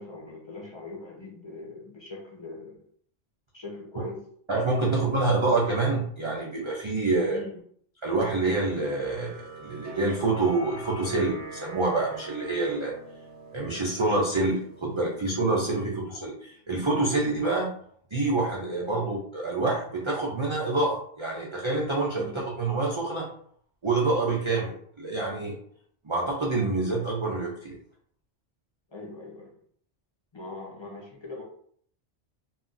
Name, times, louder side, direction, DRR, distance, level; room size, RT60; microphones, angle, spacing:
voice 1, 0.0-2.8 3.5-4.2 4.8-5.5 7.3-7.6 15.8-16.0 18.9-19.1 22.1-22.4 28.9-29.5 30.3-31.4, left 2 dB, 50° left, -3 dB, 0.3 m, -41 dB
voice 2, 4.5-7.4 8.0-12.9 13.5-17.7 18.1-23.3 23.8-25.5 26.0-27.7, right 3 dB, 50° right, -4 dB, 0.3 m, -27 dB
sound 1, 8.6-15.5, right 3 dB, 80° right, 0.9 m, -44 dB
2.3 x 2.1 x 3.8 m, 0.62 s
omnidirectional pair, 1.2 m